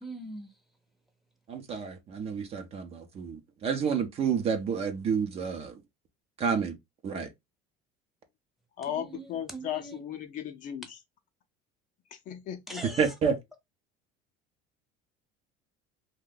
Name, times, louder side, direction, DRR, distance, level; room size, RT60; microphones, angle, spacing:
voice 1, 0.0-0.5 8.9-10.0 12.7-13.1, right 1 dB, ahead, 0.8 m, -42 dB
voice 2, 1.5-5.8 6.4-6.7 7.0-7.3 13.0-13.4, right 6 dB, 35° right, 0.6 m, -29 dB
voice 3, 8.8-11.0 12.3-12.8, left 10 dB, 45° left, 0.5 m, -36 dB
2.6 x 2.2 x 3.8 m
cardioid pair, 130°, 18 cm